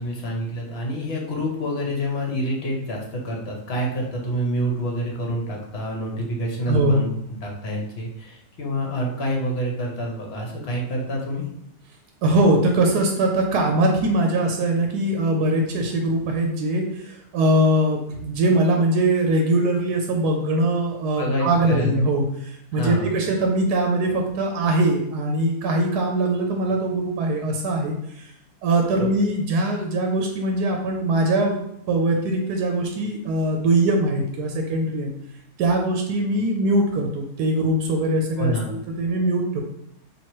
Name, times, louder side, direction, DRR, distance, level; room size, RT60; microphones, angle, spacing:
voice 1, 0.0-11.4 21.2-22.0 22.8-23.1 29.0-29.1 38.4-38.7, equal, 50° left, -1 dB, 1.0 m, -27 dB
voice 2, 6.7-7.0 12.2-28.3 28.6-35.1 35.6-39.6, right 1 dB, 90° right, 2 dB, 1.1 m, -22 dB
3.0 x 2.8 x 4.5 m, 0.77 s
omnidirectional pair, 1.6 m